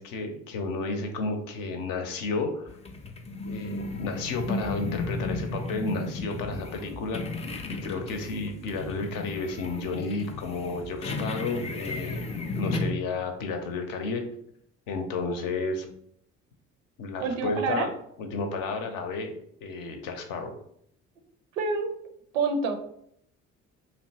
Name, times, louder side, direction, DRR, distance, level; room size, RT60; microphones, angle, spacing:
voice 1, 0.0-2.7 3.4-7.2 7.7-12.2 12.5-14.2 14.9-15.9 17.0-17.9 18.2-19.3 19.6-20.6, left 3 dB, 60° left, 4 dB, 0.6 m, -32 dB
sound 1, 2.7-12.9, left 2 dB, 20° left, 0.3 m, -34 dB
voice 2, 17.2-17.9 21.5-21.9 22.3-22.8, right 4 dB, 85° right, 5 dB, 0.5 m, -27 dB
2.8 x 2.1 x 2.7 m, 0.70 s
hypercardioid pair, 50°, 38 cm